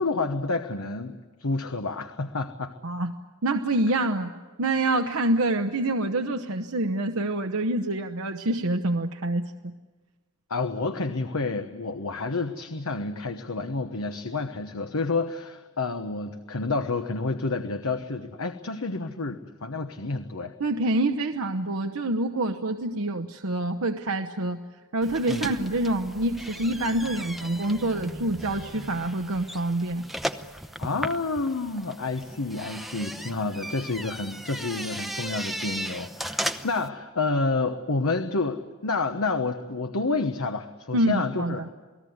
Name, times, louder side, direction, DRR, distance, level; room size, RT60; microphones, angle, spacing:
voice 1, 0.0-2.7 10.5-20.5 25.3-25.5 30.8-41.7, left 3 dB, 75° left, 7 dB, 1.1 m, -29 dB
voice 2, 3.4-4.3 4.6-9.7 20.6-24.6 24.9-30.0 40.9-41.7, right 1 dB, 75° right, 6 dB, 1.0 m, -26 dB
sound 1, 25.0-36.9, equal, ahead, 0.8 m, -36 dB
28.5 x 19.0 x 9.5 m, 1.3 s
head